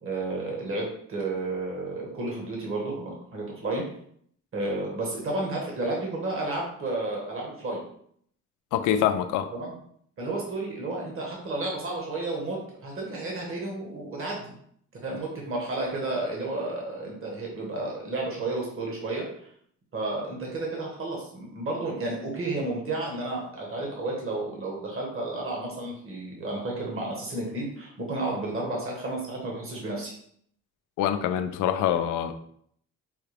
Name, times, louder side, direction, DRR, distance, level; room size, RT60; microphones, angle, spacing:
voice 1, 0.0-3.8 4.5-7.8 9.5-9.7 10.2-14.5 15.0-19.2 19.9-30.1, right 2 dB, 45° right, -2 dB, 1.4 m, -32 dB
voice 2, 8.7-9.5 31.0-32.3, left 10 dB, 90° left, 9 dB, 0.5 m, -25 dB
5.5 x 2.4 x 3.3 m, 0.65 s
cardioid pair, 90°, 30 cm